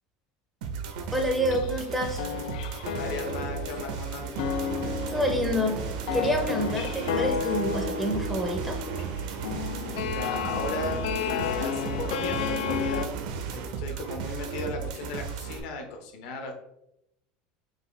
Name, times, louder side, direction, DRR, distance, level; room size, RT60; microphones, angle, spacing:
sound 1, 0.6-15.6, right 6 dB, 90° right, 0.7 m, -35 dB
voice 1, 1.1-2.2 5.1-5.8 6.1-8.8, equal, ahead, 2 dB, 0.5 m, -27 dB
sound 2, 1.2-1.9 2.2-13.1, left 9 dB, 85° left, 0.3 m, -33 dB
voice 2, 2.9-4.3 10.0-13.2 13.5-16.5, left 2 dB, 55° left, 3 dB, 0.8 m, -35 dB
sound 3, 4.3-13.7, right 6 dB, 55° right, 0.5 m, -39 dB
4.8 x 2.6 x 3.1 m, 0.83 s
cardioid pair, 175°, 4 cm